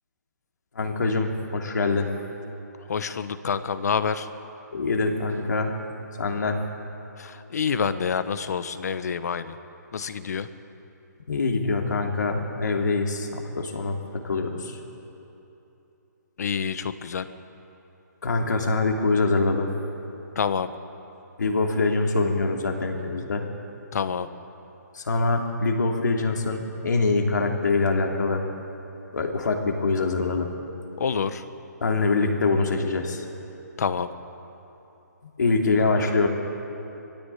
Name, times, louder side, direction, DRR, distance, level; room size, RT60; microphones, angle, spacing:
voice 1, 0.7-2.1 4.7-5.8 6.2-6.6 11.3-14.8 18.2-19.7 21.4-23.4 24.9-28.4 29.1-30.5 31.8-33.2 35.4-36.3, left 3 dB, 75° left, 2 dB, 3.1 m, -24 dB
voice 2, 2.9-4.3 7.2-9.6 9.9-10.5 16.4-17.3 20.3-20.7 23.9-24.3 31.0-31.4 33.8-34.1, left 6 dB, 60° left, 12 dB, 1.1 m, -27 dB
20.5 x 16.0 x 8.5 m, 3.0 s
hypercardioid pair, 155°, 10 cm